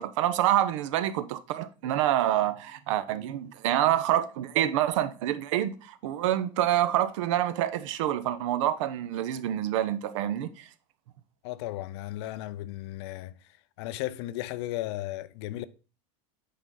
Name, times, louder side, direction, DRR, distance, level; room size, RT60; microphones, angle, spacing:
voice 1, 0.0-10.7, right 12 dB, 70° right, 0.7 m, -27 dB
voice 2, 11.4-13.3 13.8-15.6, left 15 dB, 55° left, 0.5 m, -35 dB
8.6 x 5.3 x 3.8 m
supercardioid pair, 170°, 17 cm